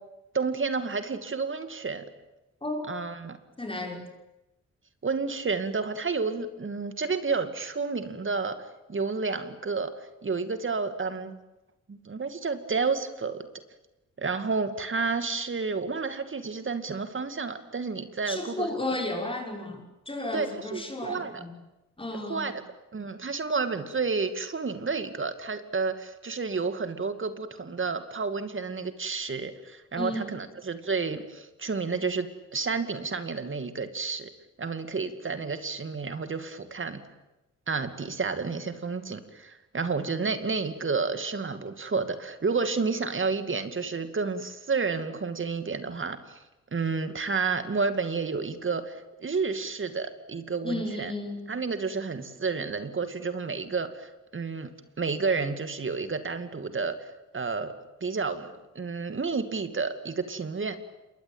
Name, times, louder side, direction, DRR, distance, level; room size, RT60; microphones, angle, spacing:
voice 1, 0.3-2.1 2.9-3.4 5.0-11.4 11.9-13.5 14.2-18.7 20.3-21.4 22.2-22.6 22.9-34.3 34.6-37.0 37.7-46.4 46.7-51.1 51.5-54.7 55.0-57.7 58.0-60.7, right 4 dB, 40° right, 10 dB, 2.4 m, -30 dB
voice 2, 3.6-4.0 18.2-21.5 22.0-22.5 30.0-30.2 50.6-51.5, left 2 dB, 20° left, 2 dB, 5.9 m, -33 dB
27.5 x 22.5 x 9.1 m, 0.98 s
cardioid pair, 80°, 30 cm